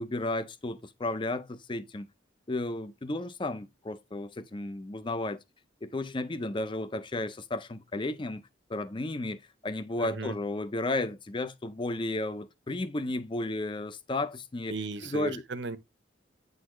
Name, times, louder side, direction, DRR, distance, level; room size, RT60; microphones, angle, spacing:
voice 1, 0.0-2.1 2.5-5.4 5.8-8.4 8.7-14.8 15.0-15.4, left 2 dB, 25° left, 0.5 m, -33 dB
voice 2, 10.0-10.3 14.7-15.8, right 3 dB, 70° right, 0.9 m, -35 dB
8.6 x 4.0 x 3.0 m
head